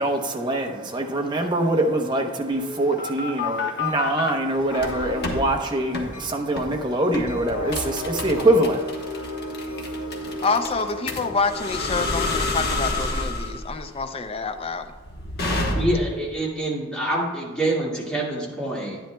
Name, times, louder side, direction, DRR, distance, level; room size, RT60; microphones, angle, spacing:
voice 1, 0.0-10.4, right 1 dB, 20° right, 2 dB, 0.8 m, -24 dB
sound 1, 2.5-4.3 4.8-5.4 5.9-6.1 6.6-6.8 7.1-16.2, left 2 dB, 50° left, 1.2 m, -28 dB
sound 2, 3.8-12.8, left 1 dB, 80° left, 0.9 m, -35 dB
voice 2, 10.4-14.9, left 4 dB, 30° left, 8 dB, 0.5 m, -27 dB
voice 3, 15.4-19.0, right 1 dB, 5° left, -5 dB, 1.9 m, -26 dB
10.5 x 10.0 x 2.3 m, 1.3 s
head